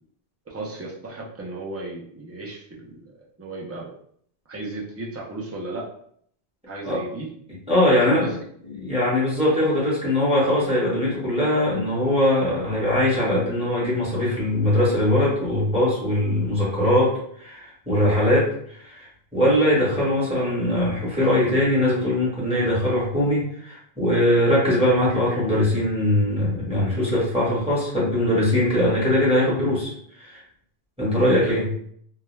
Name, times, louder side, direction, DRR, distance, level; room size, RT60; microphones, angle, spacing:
voice 1, 0.5-3.0 3.4-3.9 4.5-5.9 6.7-7.3 7.9-8.4 31.4-31.7, right 2 dB, 20° right, -3 dB, 0.4 m, -34 dB
voice 2, 7.7-8.2 8.6-19.1 19.3-29.9 30.2-30.4 31.0-31.7, left 1 dB, 5° right, -7 dB, 1.0 m, -21 dB
2.3 x 2.1 x 3.0 m, 0.63 s
omnidirectional pair, 1.0 m